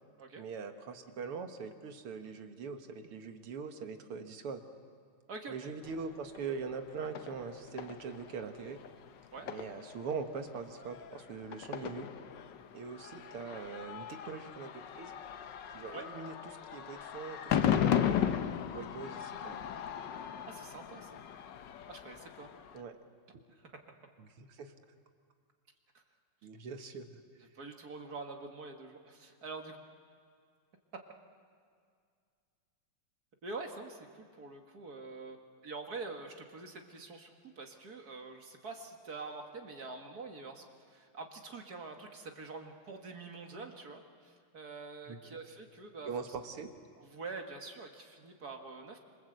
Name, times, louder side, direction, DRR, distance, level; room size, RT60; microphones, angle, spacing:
voice 1, 0.4-4.6 5.5-8.8 9.5-12.1 12.7-15.1 15.7-18.3 18.7-19.6 22.7-23.0 24.2-24.7 26.4-27.2 45.1-45.2 46.1-46.7, right 5 dB, 90° right, 6 dB, 2.4 m, -42 dB
sound 1, 5.8-22.8, left 9 dB, 65° left, 1.4 m, -37 dB
voice 2, 20.5-21.1 21.9-22.5 27.5-29.8 33.4-46.1 47.0-49.0, right 3 dB, 45° right, 3 dB, 2.2 m, -45 dB
27.0 x 26.5 x 8.0 m, 2.2 s
omnidirectional pair, 2.4 m